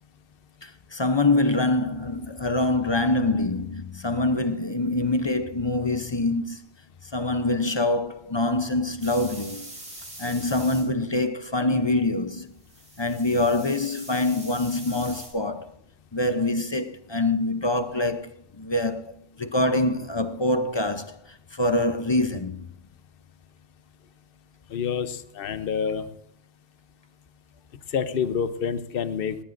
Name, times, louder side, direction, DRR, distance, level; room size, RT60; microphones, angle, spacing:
voice 1, 0.6-6.6 7.1-9.7 10.2-12.5 13.0-15.7 16.1-19.1 19.4-22.7, left 2 dB, 30° left, 0.6 m, -25 dB
sound 1, 9.0-10.8 12.6-15.3, right 1 dB, 80° right, 4.5 m, -43 dB
voice 2, 24.7-26.1 27.9-29.4, left 7 dB, 60° left, 1.0 m, -27 dB
19.0 x 17.5 x 2.6 m
omnidirectional pair, 1.1 m